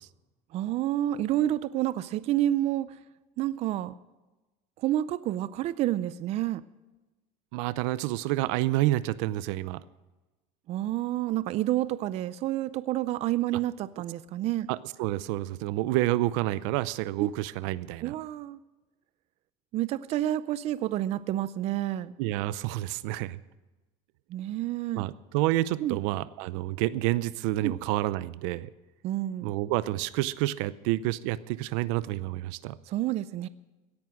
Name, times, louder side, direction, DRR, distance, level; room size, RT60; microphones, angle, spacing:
voice 1, 0.5-2.9 3.4-3.9 4.8-6.6 10.7-14.7 17.2-17.3 18.0-18.6 19.7-22.1 24.3-25.1 25.8-26.0 27.6-27.7 29.0-29.5 32.9-33.5, right 13 dB, 40° right, 16 dB, 0.5 m, -29 dB
voice 2, 7.5-9.8 14.7-18.1 22.2-23.4 25.0-28.7 29.4-32.8, right 16 dB, 80° right, 17 dB, 0.6 m, -29 dB
17.0 x 10.5 x 6.3 m, 1.1 s
cardioid pair, 150°, 16 cm